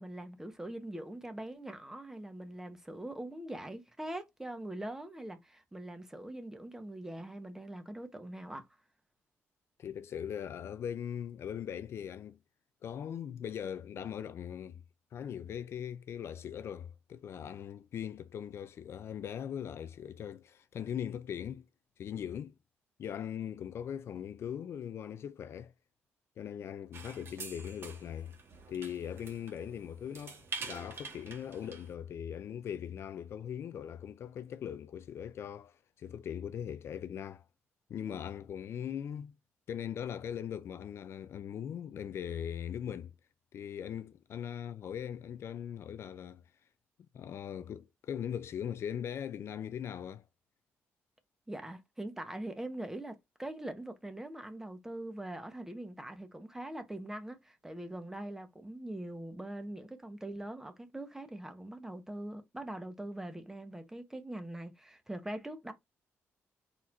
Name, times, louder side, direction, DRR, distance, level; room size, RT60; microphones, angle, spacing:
voice 1, 0.0-8.6 51.5-65.7, right 1 dB, 10° right, 1.0 m, -42 dB
voice 2, 9.8-12.4 12.8-14.8 15.1-21.7 22.0-22.5 23.0-25.7 26.4-28.3 28.7-37.5 37.9-39.3 39.7-43.1 43.5-46.4 47.1-50.2, left 9 dB, 60° left, 0.4 m, -40 dB
sound 1, 26.9-31.9, right 4 dB, 55° right, 1.4 m, -46 dB
4.4 x 4.0 x 2.5 m
cardioid pair, 105°, 5 cm